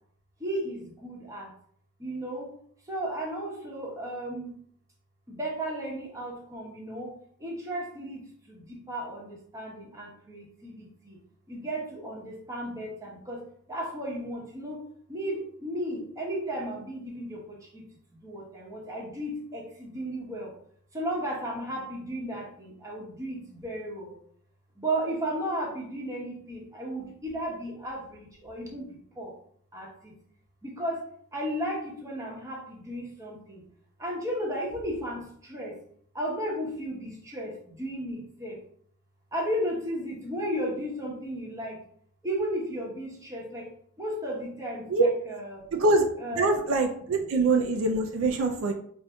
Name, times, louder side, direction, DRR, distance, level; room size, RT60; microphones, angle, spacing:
voice 1, 0.4-1.5 2.0-2.5 2.9-4.5 5.3-11.2 11.5-13.4 13.7-14.8 15.1-17.9 18.2-20.5 20.9-24.1 24.8-29.3 29.7-30.1 30.6-31.0 31.3-33.6 34.0-35.7 36.1-38.6 39.3-41.8 42.2-43.7 44.0-45.6 46.2-46.5, right 1 dB, 15° right, -3 dB, 0.9 m, -34 dB
voice 2, 45.7-46.1 46.4-48.7, right 3 dB, 70° right, 3 dB, 0.4 m, -24 dB
4.9 x 2.6 x 2.3 m, 0.62 s
head